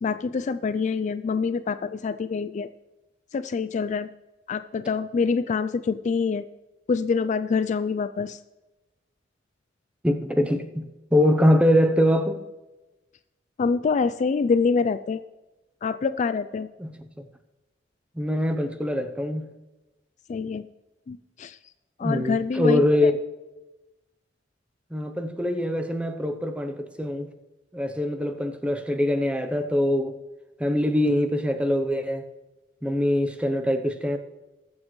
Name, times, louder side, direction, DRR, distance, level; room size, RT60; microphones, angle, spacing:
voice 1, 0.0-2.7 3.3-4.1 4.5-6.4 6.9-8.4 13.6-15.2 15.8-16.7 20.3-20.6 21.1-21.6 22.0-23.1, left 5 dB, 40° left, 0.3 m, -26 dB
voice 2, 10.0-10.8 11.1-12.4 16.8-16.9 18.2-19.5 22.0-23.2 24.9-27.3 27.7-30.2 30.6-32.3 32.8-34.2, left 1 dB, 5° right, 0.7 m, -23 dB
20.5 x 7.3 x 3.2 m
head